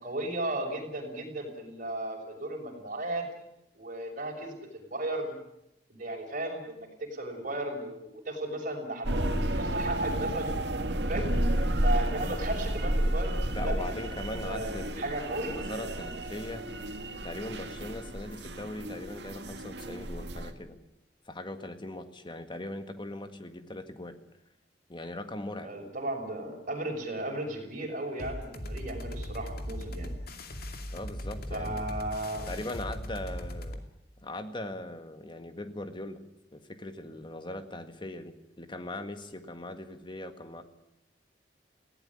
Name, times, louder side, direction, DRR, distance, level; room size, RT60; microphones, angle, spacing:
voice 1, 0.0-3.2 3.7-5.4 5.9-14.0 14.4-15.7 25.6-30.2 31.5-32.5, right 1 dB, 50° right, 1 dB, 6.4 m, -35 dB
sound 1, 9.0-20.5, right 1 dB, 70° right, 2.0 m, -31 dB
voice 2, 13.5-15.2 15.5-16.6 17.2-20.8 21.3-24.2 24.9-25.7 30.9-32.0 32.5-33.8 34.2-36.2 36.5-40.6, left 1 dB, 30° left, 8 dB, 1.8 m, -40 dB
sound 2, 28.2-33.8, equal, 60° left, 2.5 m, -38 dB
19.5 x 17.0 x 10.0 m, 0.83 s
head